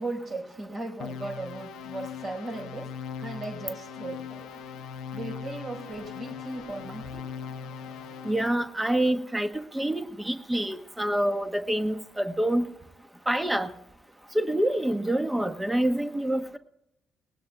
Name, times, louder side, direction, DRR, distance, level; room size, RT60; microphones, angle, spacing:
voice 1, 0.0-4.5 5.1-7.3, right 2 dB, 50° right, 2 dB, 4.5 m, -37 dB
sound 1, 1.0-8.6, left 7 dB, 65° left, 0.8 m, -40 dB
sound 2, 5.8-8.7, right 1 dB, 75° right, 4.8 m, -55 dB
voice 2, 8.2-12.7 13.3-13.7 14.3-16.6, right 1 dB, 10° right, 8 dB, 1.3 m, -27 dB
20.0 x 18.5 x 2.3 m, 0.80 s
figure-of-eight pair, 40°, 0 cm